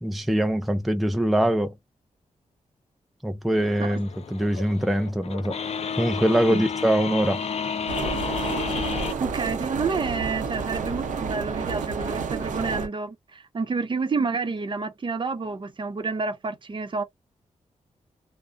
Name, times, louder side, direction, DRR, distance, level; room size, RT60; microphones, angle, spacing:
voice 1, 0.0-1.7 3.2-5.6 6.0-7.4, right 1 dB, ahead, 0.4 m, -23 dB
sound 1, 3.5-9.1, left 6 dB, 55° left, 0.5 m, -31 dB
sound 2, 7.9-12.9, right 5 dB, 80° right, 0.6 m, -30 dB
voice 2, 9.2-17.0, right 4 dB, 40° right, 0.7 m, -29 dB
2.4 x 2.1 x 2.4 m
cardioid pair, 80°, 13 cm